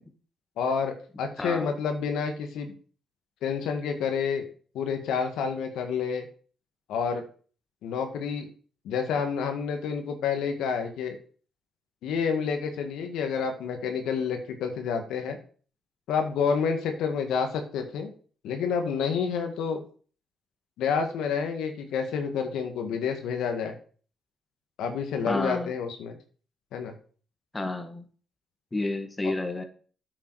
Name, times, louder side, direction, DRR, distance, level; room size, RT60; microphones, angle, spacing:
voice 1, 0.6-2.7 3.4-4.4 4.7-6.3 6.9-7.2 7.8-8.5 8.8-11.2 12.0-15.4 16.1-18.1 18.4-19.8 20.8-23.7 24.8-26.2 26.7-26.9, left 6 dB, 85° left, 6 dB, 1.7 m, -29 dB
voice 2, 1.4-1.8 25.2-25.7 27.5-28.0 28.7-29.6, left 2 dB, 20° left, 7 dB, 1.8 m, -30 dB
9.2 x 7.0 x 4.8 m, 0.41 s
cardioid pair, 90°, 0 cm